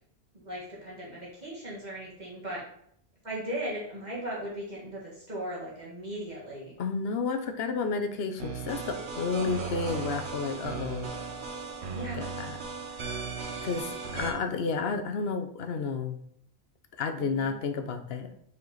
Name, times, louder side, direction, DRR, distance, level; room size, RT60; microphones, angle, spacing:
voice 1, 0.3-2.6 3.2-6.7 9.4-9.6 11.9-12.3 17.2-17.5, right 1 dB, 40° right, -6 dB, 1.8 m, -38 dB
voice 2, 6.8-11.1 12.1-12.6 13.6-16.2 17.0-18.3, left 4 dB, 70° left, 7 dB, 0.9 m, -31 dB
sound 1, 8.4-14.3, right 4 dB, 75° right, 1.3 m, -36 dB
5.4 x 4.6 x 3.9 m, 0.69 s
omnidirectional pair, 1.1 m